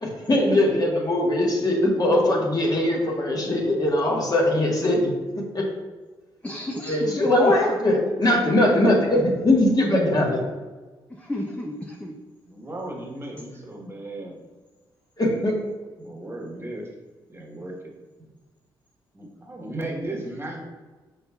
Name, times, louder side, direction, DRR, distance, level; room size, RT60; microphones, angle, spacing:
voice 1, 0.0-5.7 6.9-10.4 15.2-15.6, left 1 dB, 40° left, -1 dB, 1.3 m, -21 dB
voice 2, 6.4-7.8 11.1-12.2 19.7-19.8, left 1 dB, 10° left, 2 dB, 0.5 m, -33 dB
voice 3, 12.4-14.4 16.0-16.9 17.3-17.7 19.1-20.6, right 1 dB, 25° right, -1 dB, 1.3 m, -35 dB
5.4 x 4.2 x 2.3 m, 1.3 s
supercardioid pair, 50°, 11 cm